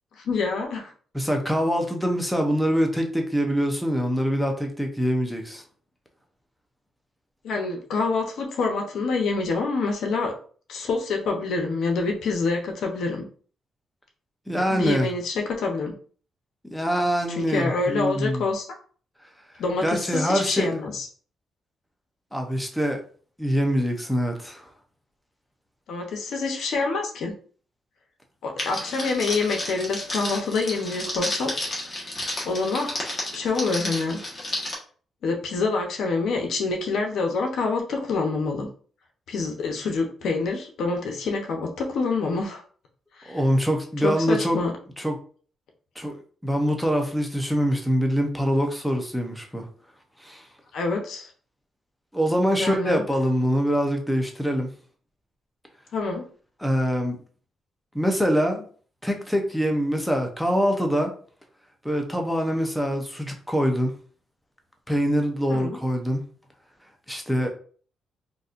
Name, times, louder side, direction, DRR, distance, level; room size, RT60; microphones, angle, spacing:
voice 1, 0.2-0.9 7.4-10.3 10.7-13.2 14.7-15.9 17.3-18.7 19.6-21.1 25.9-27.3 28.4-31.5 31.8-31.9 32.4-32.9 33.3-34.2 35.2-38.7 39.3-42.6 43.2-43.4 44.0-44.7 50.7-51.3 52.6-53.0 55.9-56.3 65.5-65.8, left 4 dB, 75° left, 0.8 m, -26 dB
voice 2, 1.1-5.6 14.5-15.1 16.7-18.4 19.8-20.7 22.3-23.0 23.4-24.7 43.3-44.6 45.0-45.2 46.0-49.7 50.2-50.4 52.1-54.7 56.6-57.2 57.9-58.7 59.0-61.1 61.8-63.9 64.9-66.2 67.1-67.5, equal, ahead, 0.7 m, -24 dB
Crackle, 28.6-34.7, left 1 dB, 30° left, 1.4 m, -32 dB
4.0 x 2.7 x 2.5 m
cardioid pair, 90°, 0 cm